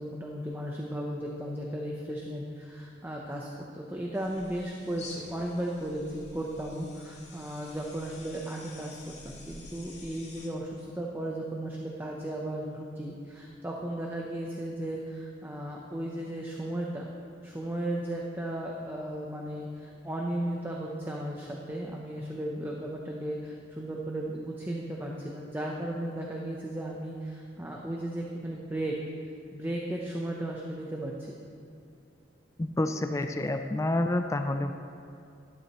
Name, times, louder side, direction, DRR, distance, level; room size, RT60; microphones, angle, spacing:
voice 1, 0.0-3.5 3.7-17.1 17.4-28.9 29.5-31.4, right 1 dB, 10° right, -2 dB, 0.8 m, -35 dB
sound 1, 4.1-10.5, left 2 dB, 35° left, 2.0 m, -49 dB
voice 2, 32.6-34.7, left 1 dB, 15° left, 7 dB, 0.4 m, -28 dB
12.5 x 12.0 x 3.1 m, 2.5 s
head